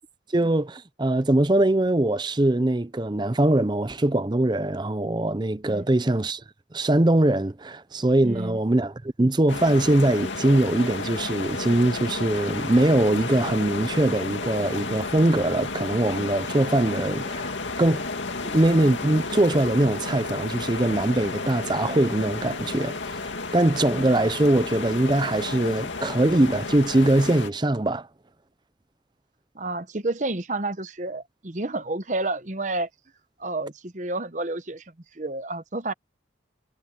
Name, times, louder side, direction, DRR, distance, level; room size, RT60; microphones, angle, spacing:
voice 1, 0.3-6.4 6.7-17.5 17.8-18.1 18.4-23.0 23.5-28.1, right 1 dB, 25° right, 0.6 m, -22 dB
voice 2, 8.2-8.6 29.5-32.9 33.4-34.8 35.1-35.9, right 2 dB, 40° right, 1.0 m, -30 dB
sound 1, 9.5-27.5, left 3 dB, 80° left, 2.4 m, -32 dB
head